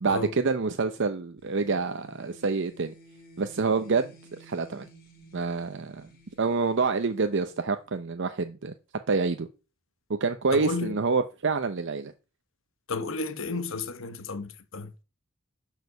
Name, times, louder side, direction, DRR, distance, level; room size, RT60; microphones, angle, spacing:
voice 1, 0.0-2.9 3.4-4.1 4.4-4.9 5.3-6.1 6.4-8.7 9.1-9.5 10.1-12.1, right 4 dB, 60° right, 0.7 m, -27 dB
sound 1, 1.4-8.0, equal, 45° left, 3.4 m, -54 dB
voice 2, 10.5-11.0 12.9-14.9, left 3 dB, 65° left, 1.2 m, -32 dB
10.5 x 5.0 x 6.7 m
head